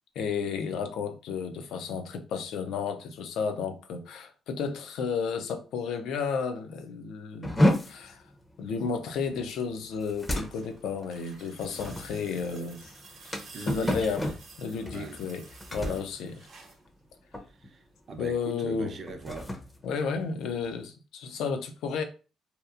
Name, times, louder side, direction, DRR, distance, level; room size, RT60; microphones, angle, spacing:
voice 1, 0.2-8.2 8.6-12.9 13.7-14.3 14.6-15.4 15.7-16.3 18.2-18.9 19.8-22.0, left 5 dB, 80° left, 0.4 m, -32 dB
sound 1, 7.4-17.1 17.3-17.7 18.1-18.3 18.9-20.8, equal, 20° left, 0.5 m, -32 dB
sound 2, 10.2-16.9 18.1-18.2, right 4 dB, 70° right, 0.8 m, -51 dB
voice 2, 13.5-14.1 14.9-15.2 15.8-16.0 17.5-19.6, right 4 dB, 50° right, 0.5 m, -40 dB
2.8 x 2.1 x 2.4 m
cardioid pair, 90°, 0 cm